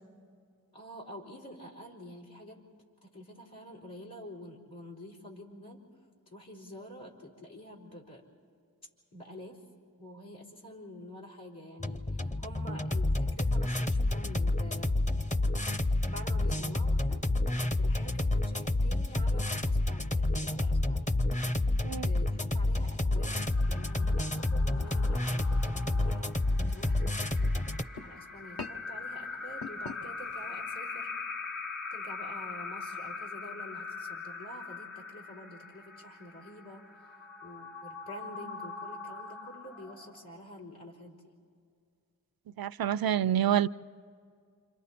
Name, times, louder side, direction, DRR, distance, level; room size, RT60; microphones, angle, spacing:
voice 1, 0.7-2.6 3.0-5.9 6.3-8.2 9.1-9.6 10.0-15.0 16.1-17.2 17.8-21.1 22.0-26.4 26.7-27.5 28.0-31.1 31.9-41.3, equal, 90° left, 4.2 m, -48 dB
sound 1, 11.8-27.8, left 2 dB, 20° left, 0.6 m, -29 dB
sound 2, 23.1-40.5, left 4 dB, 50° left, 2.3 m, -42 dB
sound 3, 24.1-30.8, left 3 dB, 75° left, 1.1 m, -49 dB
voice 2, 42.6-43.7, right 10 dB, 80° right, 0.5 m, -27 dB
29.0 x 26.5 x 4.3 m
wide cardioid pair, 45°, 35 cm